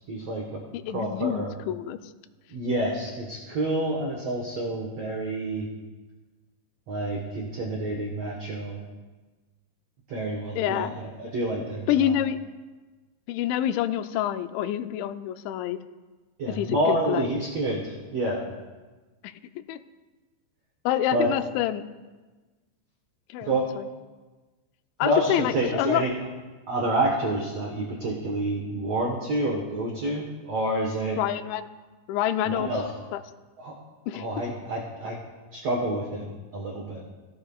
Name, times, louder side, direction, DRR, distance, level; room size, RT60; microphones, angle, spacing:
voice 1, 0.1-0.6 0.9-1.5 2.5-5.7 6.9-8.8 10.1-10.9 11.2-12.2 16.4-18.4 21.1-21.4 23.4-23.7 25.0-26.1 26.7-31.2 32.5-32.9 33.6-33.7 34.1-35.2 35.5-37.0, right 1 dB, 85° right, -1 dB, 1.4 m, -28 dB
voice 2, 0.9-2.0 10.6-11.0 11.9-12.4 13.3-15.8 16.5-17.2 19.2-19.8 20.9-21.8 23.3-23.9 25.0-26.0 31.2-31.7 32.1-32.7 33.1-33.2 34.1-34.2, left 11 dB, 90° left, 10 dB, 2.9 m, -27 dB
16.5 x 13.5 x 2.4 m, 1.3 s
omnidirectional pair, 5.1 m